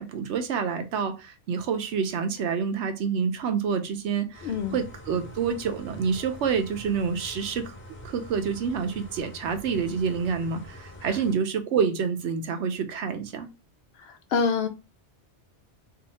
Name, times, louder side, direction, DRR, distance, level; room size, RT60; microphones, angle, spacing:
voice 1, 0.0-7.7 8.0-13.5, right 6 dB, 75° right, 0.9 m, -28 dB
sound 1, 4.3-11.3, equal, 10° left, 0.7 m, -45 dB
voice 2, 4.4-4.8 14.0-14.7, left 5 dB, 65° left, 0.8 m, -26 dB
2.7 x 2.5 x 4.0 m
omnidirectional pair, 1.2 m